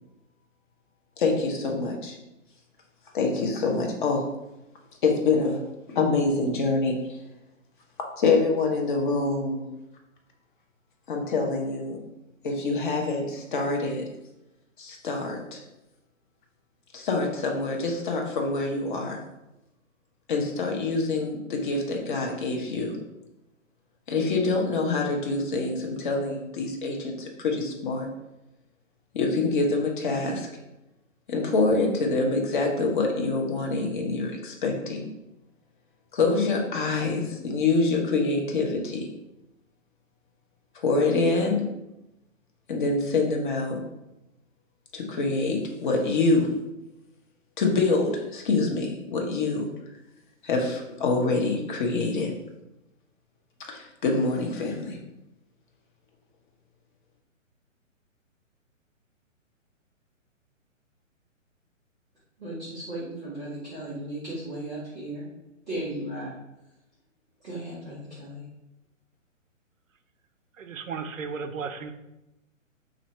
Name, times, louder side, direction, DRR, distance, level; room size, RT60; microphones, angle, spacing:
voice 1, 1.2-2.2 3.1-4.3 5.0-5.6 5.9-7.0 8.2-9.7 11.1-12.0 12.4-14.0 14.8-15.6 16.9-19.2 20.3-23.0 24.1-28.1 29.1-30.5 31.3-35.0 36.1-39.1 40.7-41.6 42.7-43.8 44.9-46.5 47.6-49.6 50.4-52.3 53.7-55.0, left 3 dB, 40° left, 0.8 m, -25 dB
voice 2, 62.4-65.2 65.7-66.3 67.4-68.4, right 1 dB, 5° right, 0.4 m, -36 dB
voice 3, 70.5-71.9, right 5 dB, 75° right, 0.6 m, -34 dB
3.1 x 2.6 x 4.2 m
figure-of-eight pair, 135°, 40 cm